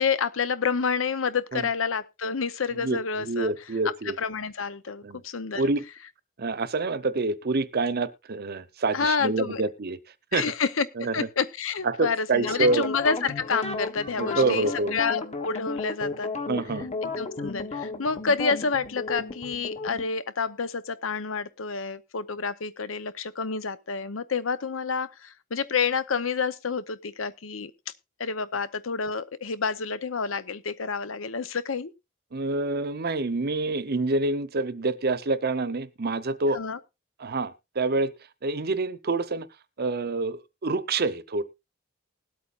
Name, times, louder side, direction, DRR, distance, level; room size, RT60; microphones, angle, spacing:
voice 1, 0.0-3.5 4.2-5.6 8.9-9.6 10.3-16.3 17.0-27.7 28.2-31.9 36.5-36.8, left 5 dB, 80° left, 0.8 m, -29 dB
voice 2, 2.8-4.2 5.0-5.2 5.6-5.8 6.4-10.0 10.3-10.4 11.0-11.3 11.8-12.9 14.2-14.9 16.5-16.9 32.3-36.6 37.2-38.1 38.4-39.5 39.8-41.4, right 3 dB, 50° right, 0.8 m, -27 dB
sound 1, 12.4-20.0, left 3 dB, 35° left, 1.5 m, -33 dB
20.5 x 8.5 x 2.5 m
head